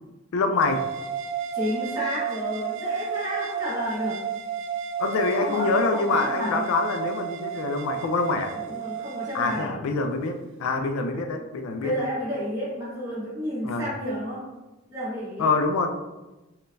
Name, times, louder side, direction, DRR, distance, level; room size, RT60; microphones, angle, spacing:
voice 1, 0.3-0.8 5.0-8.5 9.3-12.1 13.6-13.9 15.4-15.9, left 3 dB, 80° left, 5 dB, 0.3 m, -25 dB
sound 1, 0.6-9.7, right 9 dB, 60° right, 0.3 m, -32 dB
voice 2, 1.5-4.2 5.4-6.6 8.5-9.8 11.8-14.4 14.9-15.5, equal, 20° right, -8 dB, 1.2 m, -31 dB
3.7 x 2.3 x 2.5 m, 1.1 s
head